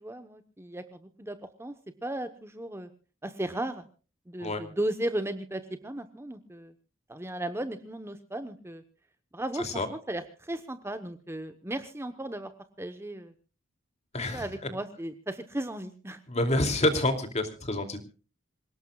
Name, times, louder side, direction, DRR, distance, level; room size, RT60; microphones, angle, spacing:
voice 1, 0.0-1.7 2.0-2.9 3.2-3.9 4.3-6.7 7.1-8.8 9.3-12.5 12.8-13.3 14.2-16.2, right 1 dB, 15° right, 9 dB, 1.0 m, -35 dB
voice 2, 16.3-18.0, left 1 dB, 35° left, 7 dB, 2.8 m, -27 dB
27.0 x 18.0 x 2.4 m, 0.36 s
head